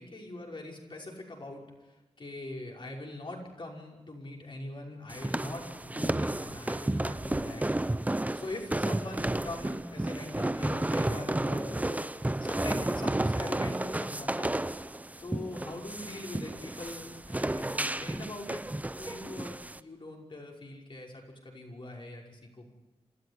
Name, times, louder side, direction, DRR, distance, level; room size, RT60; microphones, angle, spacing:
voice 1, 0.0-7.9 8.3-12.0 12.4-14.5 15.2-18.6 19.0-22.7, left 2 dB, 50° left, 0 dB, 5.7 m, -42 dB
sound 1, 5.1-19.8, right 1 dB, 15° right, 0.7 m, -32 dB
27.0 x 13.5 x 9.9 m, 1.1 s
wide cardioid pair, 75°, 11 cm